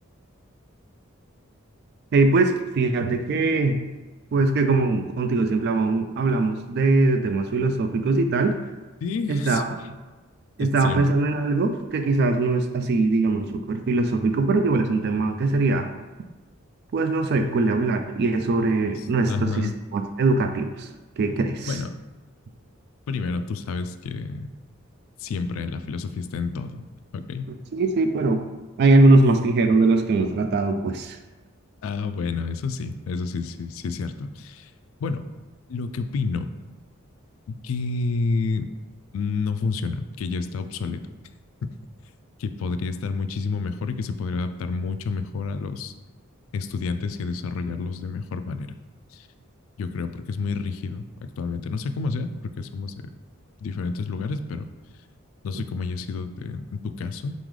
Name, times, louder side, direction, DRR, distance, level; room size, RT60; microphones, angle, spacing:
voice 1, 2.1-3.8 4.3-8.6 9.3-9.7 10.6-15.9 16.9-20.9 21.2-21.8 27.7-28.5 28.8-31.2, right 3 dB, 50° right, 7 dB, 0.3 m, -21 dB
voice 2, 9.0-9.6 10.6-11.1 19.0-19.8 21.7-21.9 23.1-24.5 25.2-26.8 27.1-27.5 31.8-34.7 35.0-35.2 35.7-36.5 37.5-38.7 39.1-41.0 41.6-41.8 42.4-45.9 46.5-48.7 49.1-49.3 49.8-51.1 51.4-52.9 53.6-54.6 55.4-57.3, left 4 dB, 70° left, 10 dB, 0.3 m, -29 dB
4.0 x 3.8 x 3.2 m, 1.2 s
head